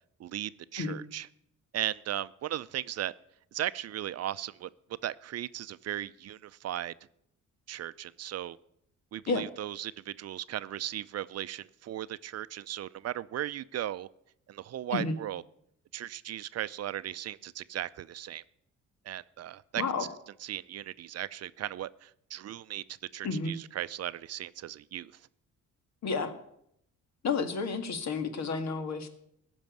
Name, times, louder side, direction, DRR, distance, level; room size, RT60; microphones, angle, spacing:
voice 1, 0.2-1.3 1.7-3.1 3.5-4.7 5.0-6.9 7.7-8.6 9.1-14.1 14.5-15.4 15.9-18.4 19.0-19.8 20.4-22.8 23.1-25.1, right 12 dB, 55° right, 16 dB, 0.5 m, -37 dB
voice 2, 19.8-20.1 23.2-23.6 26.0-26.3 27.2-29.1, left 4 dB, 60° left, 9 dB, 1.9 m, -31 dB
15.5 x 6.2 x 9.2 m, 0.73 s
cardioid pair, 90°, 30 cm